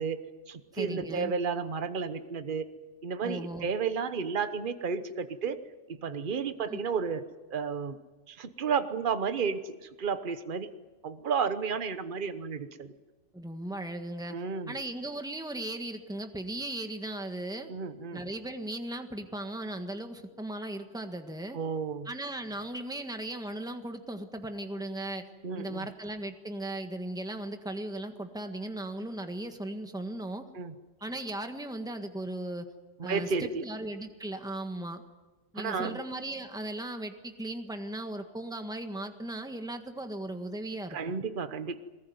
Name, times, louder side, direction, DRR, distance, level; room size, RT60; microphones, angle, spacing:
voice 1, 0.0-2.7 3.0-5.6 5.9-7.2 7.5-8.0 8.3-10.7 11.0-12.9 14.3-14.8 17.7-18.2 21.5-22.1 25.4-25.9 30.5-30.7 33.0-33.6 35.6-36.0 40.9-41.8, right 5 dB, 50° right, 10 dB, 1.2 m, -32 dB
voice 2, 0.7-1.3 3.2-3.7 6.7-6.8 13.3-14.4 14.7-17.7 18.1-21.6 22.0-25.2 25.6-30.4 31.0-32.6 33.0-35.0 35.5-41.0, right 1 dB, 5° right, 6 dB, 1.6 m, -37 dB
22.0 x 20.0 x 9.5 m, 1.2 s
omnidirectional pair, 1.2 m